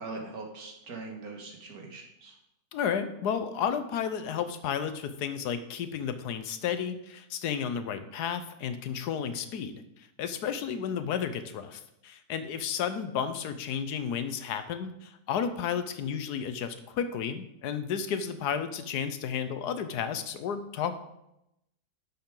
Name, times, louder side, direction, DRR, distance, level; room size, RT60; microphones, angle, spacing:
voice 1, 0.0-2.3, right 3 dB, 65° right, 1 dB, 2.1 m, -41 dB
voice 2, 2.7-20.9, left 7 dB, 85° left, 10 dB, 1.3 m, -32 dB
11.0 x 6.8 x 3.8 m, 0.85 s
omnidirectional pair, 1.7 m